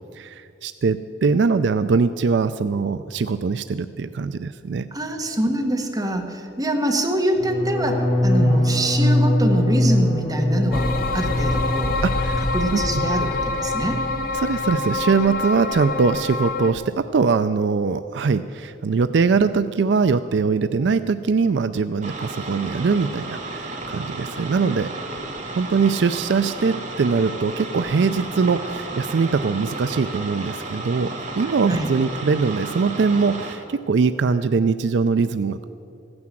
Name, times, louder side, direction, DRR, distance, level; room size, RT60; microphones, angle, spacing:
voice 1, 0.1-4.9 8.4-8.6 12.0-12.5 12.7-12.8 14.3-24.9 25.6-35.6, right 4 dB, 70° right, 11 dB, 0.4 m, -22 dB
voice 2, 4.9-12.0 12.5-14.0 31.7-31.9, right 1 dB, 20° right, 1 dB, 1.6 m, -24 dB
sound 1, 7.3-13.3 13.6-14.1 14.4-14.7, left 1 dB, 35° left, 2.1 m, -23 dB
sound 2, 10.7-16.7, left 2 dB, 55° left, 0.9 m, -26 dB
sound 3, 22.0-33.5, right 2 dB, 40° right, 1.6 m, -33 dB
15.5 x 9.6 x 7.6 m, 2.8 s
head